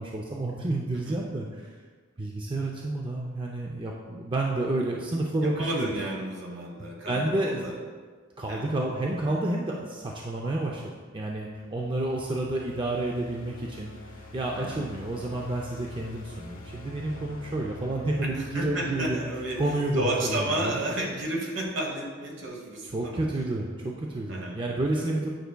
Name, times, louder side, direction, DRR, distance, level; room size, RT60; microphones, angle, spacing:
voice 1, 0.0-1.7 2.2-5.9 7.1-7.7 8.4-13.9 14.3-19.2 19.6-20.8 22.9-25.3, right 2 dB, 25° right, -1 dB, 0.4 m, -30 dB
voice 2, 5.4-7.8 8.5-8.6 14.5-14.8 18.2-23.2 24.3-24.6 24.9-25.2, right 1 dB, 65° right, 0 dB, 1.2 m, -32 dB
sound 1, 11.0-21.1, left 1 dB, 80° left, 1.1 m, -46 dB
9.1 x 5.5 x 2.2 m, 1.5 s
head